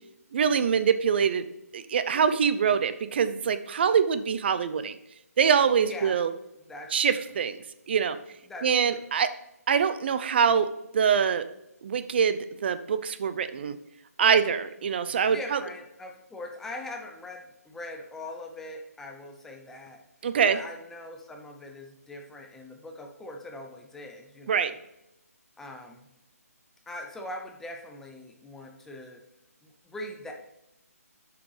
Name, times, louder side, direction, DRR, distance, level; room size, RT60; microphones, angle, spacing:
voice 1, 0.3-1.5 1.7-5.0 5.4-6.3 6.9-7.6 7.9-8.2 8.6-9.3 9.7-11.5 11.8-13.8 14.2-15.6 20.2-20.6 24.5-24.7, right 7 dB, 40° right, 11 dB, 0.5 m, -24 dB
voice 2, 5.8-6.2 6.7-7.2 8.5-9.0 15.3-20.0 20.4-24.8 25.6-26.1 26.9-29.2 29.6-30.3, left 2 dB, 5° left, 2 dB, 0.5 m, -41 dB
7.6 x 5.9 x 3.2 m, 0.87 s
hypercardioid pair, 160°, 9 cm